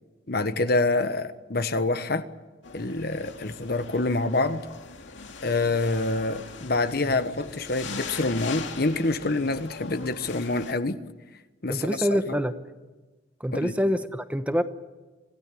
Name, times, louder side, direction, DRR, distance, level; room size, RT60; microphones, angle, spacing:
voice 1, 0.3-2.3 2.7-4.6 5.4-11.0 11.6-12.0 13.5-13.7, left 2 dB, 55° left, 1.2 m, -26 dB
sound 1, 2.6-10.7, left 5 dB, 85° left, 2.2 m, -41 dB
voice 2, 11.7-12.5 13.4-14.6, equal, 5° right, 0.9 m, -25 dB
26.0 x 16.0 x 10.0 m
head